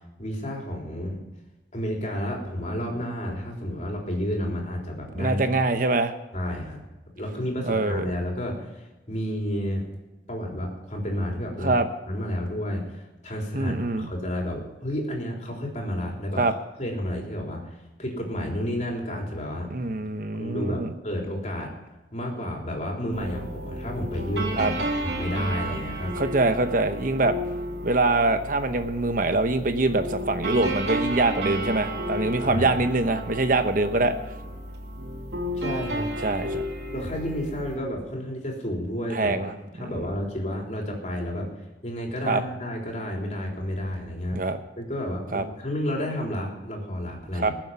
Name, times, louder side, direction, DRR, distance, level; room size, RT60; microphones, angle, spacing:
voice 1, 0.2-1.2 1.7-5.4 6.3-6.8 7.2-9.9 10.3-11.7 12.1-16.4 16.8-19.7 20.3-21.7 22.1-26.1 32.4-32.8 35.5-36.1 36.9-44.4 44.8-47.5, equal, 40° left, 0 dB, 3.8 m, -31 dB
voice 2, 5.2-6.1 7.7-8.0 11.6-11.9 13.5-14.1 16.4-16.5 19.7-20.9 24.6-24.7 26.2-27.4 27.8-34.1 36.2-36.7 39.1-39.5 42.3-42.4 44.3-44.6 45.3-45.4 47.4-47.5, right 2 dB, 50° right, 8 dB, 1.0 m, -24 dB
sound 1, 23.1-37.8, right 1 dB, 70° right, 3.1 m, -32 dB
21.0 x 7.6 x 5.7 m, 1.1 s
head